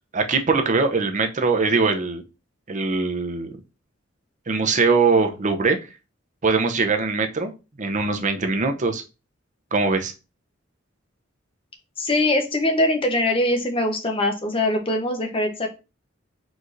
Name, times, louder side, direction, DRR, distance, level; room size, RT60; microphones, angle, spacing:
voice 1, 0.1-2.2 2.7-3.5 4.5-5.8 6.4-7.5 7.8-9.0 9.7-10.1, right 4 dB, 40° right, 6 dB, 0.6 m, -21 dB
voice 2, 12.0-15.7, left 1 dB, 30° left, 4 dB, 0.9 m, -22 dB
4.6 x 3.9 x 2.6 m, 0.29 s
head